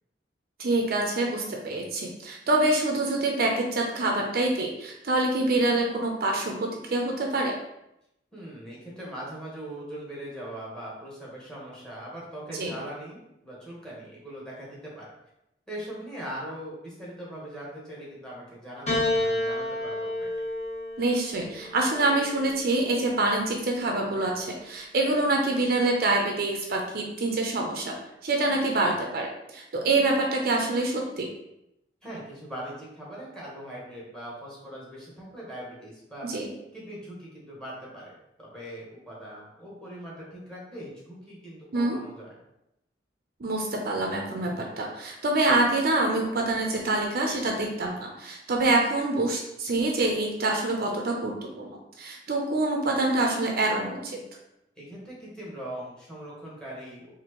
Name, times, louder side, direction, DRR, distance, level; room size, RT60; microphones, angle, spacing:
voice 1, 0.6-7.6 12.5-12.7 21.0-27.9 28.2-31.3 36.2-36.5 41.7-42.0 43.4-51.7 52.0-54.2, right 2 dB, 55° right, 1 dB, 0.5 m, -26 dB
voice 2, 8.3-15.1 15.7-20.4 32.0-36.3 36.7-38.1 38.4-42.3 54.8-57.1, right 1 dB, 5° left, -6 dB, 1.3 m, -41 dB
Piano, 18.9-23.3 24.4-25.1, left 1 dB, 40° left, 1.2 m, -31 dB
4.3 x 2.7 x 3.0 m, 0.84 s
head